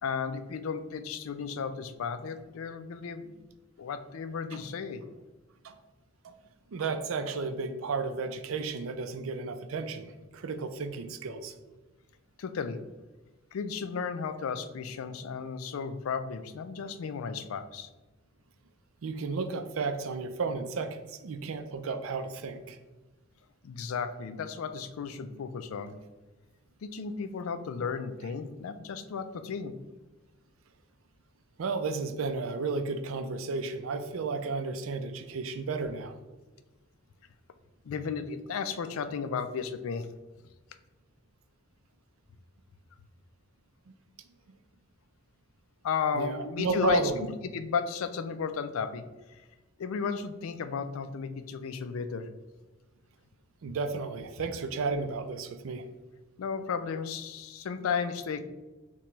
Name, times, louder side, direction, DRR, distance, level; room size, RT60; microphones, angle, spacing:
voice 1, 0.0-3.3 3.8-5.0 12.4-12.8 13.5-17.9 23.6-26.0 26.8-29.7 37.8-40.1 45.8-47.0 47.4-49.5 49.8-52.3 56.4-58.4, left 6 dB, 90° left, 10 dB, 0.4 m, -34 dB
voice 2, 6.7-11.5 19.0-22.8 31.6-36.2 43.9-44.0 46.1-47.3 53.6-55.9, right 4 dB, 75° right, 8 dB, 0.4 m, -33 dB
5.8 x 2.3 x 3.0 m, 1.2 s
head